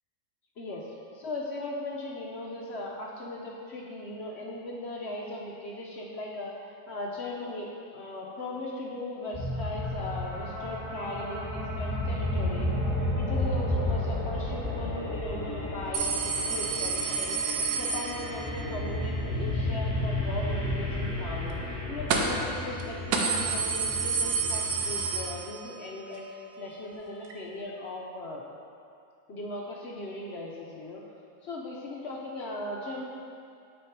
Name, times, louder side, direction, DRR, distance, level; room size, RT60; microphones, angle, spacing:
voice 1, 0.6-0.9 1.1-6.5 6.9-12.7 13.1-17.4 17.8-26.2 26.6-28.4 29.3-31.0 31.4-33.0, left 2 dB, 60° left, -2 dB, 0.7 m, -38 dB
sound 1, 9.3-25.3, left 1 dB, 10° left, 1.0 m, -32 dB
sound 2, 15.9-18.6 22.1-22.5 22.8-22.9 23.1-25.9 26.2-26.3 27.3-27.4, right 5 dB, 80° right, 1.2 m, -29 dB
6.3 x 4.4 x 4.5 m, 2.4 s
omnidirectional pair, 1.7 m